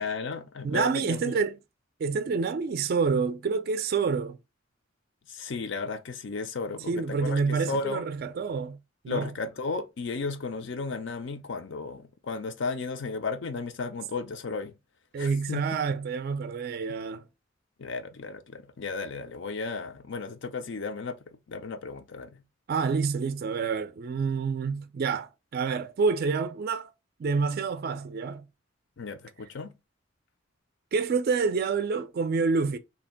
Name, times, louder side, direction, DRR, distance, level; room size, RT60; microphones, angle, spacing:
voice 1, 0.0-1.3 5.3-8.0 9.1-14.7 15.2-15.6 17.8-21.2 21.5-22.4 29.0-29.7, left 4 dB, 65° left, 0.5 m, -34 dB
voice 2, 0.6-1.6 2.0-4.4 6.9-8.8 9.0-9.3 15.1-17.2 22.7-26.9 27.2-28.5 30.9-32.8, right 5 dB, 50° right, 0.3 m, -28 dB
2.8 x 2.5 x 4.2 m
head